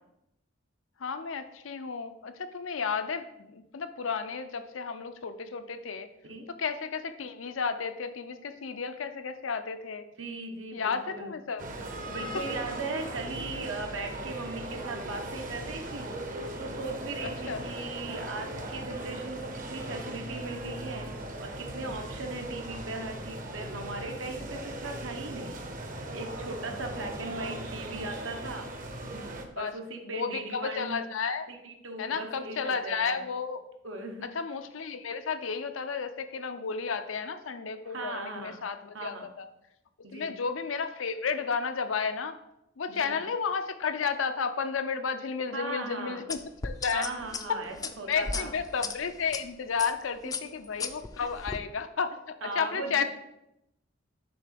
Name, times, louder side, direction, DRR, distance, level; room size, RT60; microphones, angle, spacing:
voice 1, 1.0-6.1 6.6-10.1 10.7-11.7 17.2-17.6 29.6-29.7 30.0-31.5 32.0-33.6 34.3-39.4 40.1-42.4 42.8-47.1 48.1-53.0, left 5 dB, 85° left, 9 dB, 0.6 m, -32 dB
voice 2, 10.2-11.3 12.1-21.1 21.4-28.7 29.5-31.0 31.5-33.2 33.8-34.3 37.8-38.6 38.9-39.3 40.0-40.4 42.9-43.2 45.5-46.3 46.9-48.6 52.4-53.0, right 2 dB, 80° right, 4 dB, 1.1 m, -38 dB
sound 1, 11.6-29.5, right 1 dB, 45° right, 0.8 m, -39 dB
sound 2, 46.3-49.4 49.8-50.0 50.3-51.6, left 4 dB, 20° left, 0.4 m, -36 dB
6.5 x 3.8 x 5.9 m, 0.85 s
head